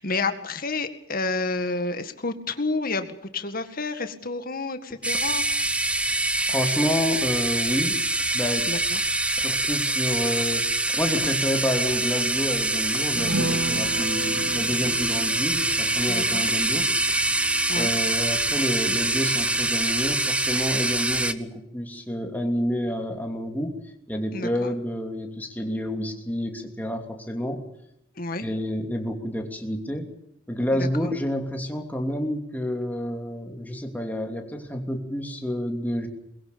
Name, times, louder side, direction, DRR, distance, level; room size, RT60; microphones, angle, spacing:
voice 1, 0.0-5.5 8.6-9.0 13.7-13.8 16.1-16.5 17.7-17.9 24.3-24.7 28.2-28.5 30.7-30.9, left 3 dB, 50° left, 8 dB, 2.0 m, -30 dB
sound 1, 5.0-21.3, right 2 dB, 5° right, 0.9 m, -25 dB
voice 2, 6.5-8.0 8.3-8.7 9.4-10.7 11.0-16.9 17.7-23.8 24.1-27.6 28.4-30.1 30.5-36.1, equal, 10° left, 3 dB, 3.0 m, -29 dB
sound 2, 13.2-19.9 20.2-20.3 20.7-20.9, right 2 dB, 80° right, 2.8 m, -35 dB
22.5 x 21.5 x 7.0 m, 0.78 s
head